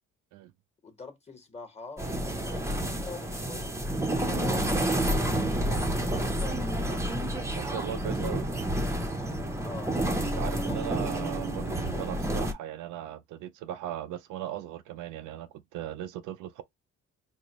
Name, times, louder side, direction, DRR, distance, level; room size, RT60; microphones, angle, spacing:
voice 1, 0.8-3.8 4.3-7.2 9.6-9.9 10.2-11.3 11.9-12.1, left 4 dB, 20° left, 1.2 m, -45 dB
sound 1, 2.0-12.5, right 1 dB, 10° right, 0.6 m, -29 dB
voice 2, 7.5-8.5 10.4-16.6, right 11 dB, 90° right, 0.5 m, -38 dB
4.1 x 2.1 x 3.0 m
cardioid pair, 90°, 30 cm